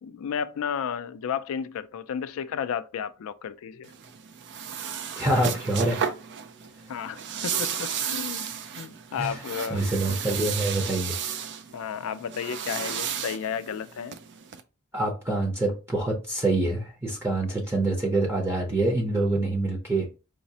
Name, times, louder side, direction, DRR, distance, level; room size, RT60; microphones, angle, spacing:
voice 1, 0.0-3.9 6.9-10.2 11.7-14.2 17.7-17.9, left 7 dB, 65° left, 0.3 m, -33 dB
sound 1, 3.8-14.6, right 8 dB, 55° right, 0.4 m, -34 dB
voice 2, 5.2-6.1 9.2-9.4 9.7-11.3 14.9-20.1, right 2 dB, 10° right, 0.6 m, -26 dB
4.8 x 2.0 x 2.7 m
head